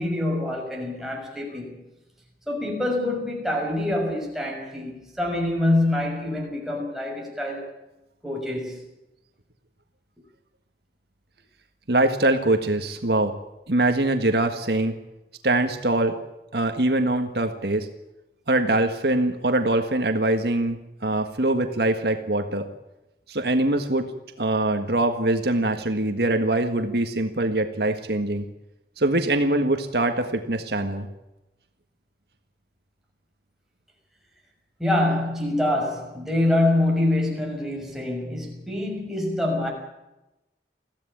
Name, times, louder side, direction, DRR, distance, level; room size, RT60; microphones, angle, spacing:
voice 1, 0.0-1.8 2.5-7.7 8.2-8.8 34.8-39.7, left 1 dB, ahead, -1 dB, 6.2 m, -25 dB
voice 2, 11.9-13.3 13.7-14.9 15.4-16.2 16.5-17.9 18.5-22.7 23.3-24.1 24.4-28.5 29.0-31.1, right 2 dB, 65° right, 6 dB, 1.7 m, -23 dB
22.5 x 15.5 x 8.7 m, 0.97 s
head